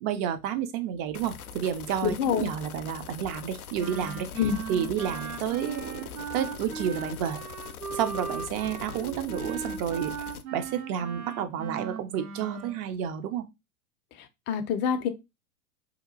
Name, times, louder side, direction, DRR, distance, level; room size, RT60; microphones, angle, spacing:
voice 1, 0.0-4.3 4.7-6.0 6.3-7.4 7.9-10.1 10.5-13.5, right 9 dB, 35° right, 0.6 m, -30 dB
sound 1, 1.1-10.4, left 8 dB, 80° left, 0.6 m, -42 dB
voice 2, 2.0-2.5 4.4-4.6 14.2-15.1, left 7 dB, 25° left, 0.5 m, -26 dB
Wind instrument woodwind instrument, 3.8-12.8, right 6 dB, 80° right, 0.7 m, -38 dB
2.8 x 2.4 x 3.8 m
figure-of-eight pair, 90°, 43 cm